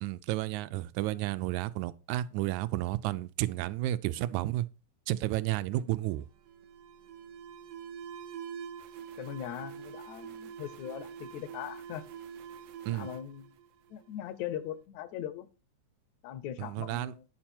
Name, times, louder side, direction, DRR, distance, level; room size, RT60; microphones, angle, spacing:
voice 1, 0.0-4.7 5.1-6.3 12.9-13.1 16.6-17.1, right 15 dB, 90° right, 2.0 m, -32 dB
Alarm, 5.8-14.4, right 8 dB, 70° right, 1.6 m, -46 dB
voice 2, 9.2-12.0 12.9-13.5 13.9-15.5 16.2-17.2, left 10 dB, 80° left, 2.0 m, -40 dB
9.5 x 5.8 x 4.4 m
omnidirectional pair, 3.3 m